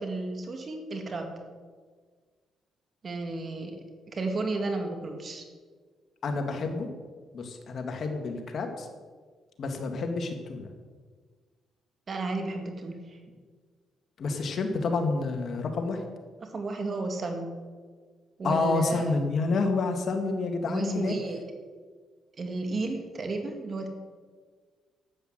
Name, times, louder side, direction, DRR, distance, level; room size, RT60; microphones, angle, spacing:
voice 1, 0.0-1.3 3.0-3.8 4.1-5.4 12.1-13.2 16.4-17.5 18.4-19.3 20.7-21.4 22.4-23.9, right 3 dB, 40° right, 4 dB, 2.1 m, -33 dB
voice 2, 6.2-6.9 7.3-8.9 9.6-10.7 14.2-16.0 18.4-21.1, left 3 dB, 55° left, 4 dB, 2.2 m, -29 dB
12.0 x 8.5 x 8.0 m, 1.5 s
cardioid pair, 90°, 0 cm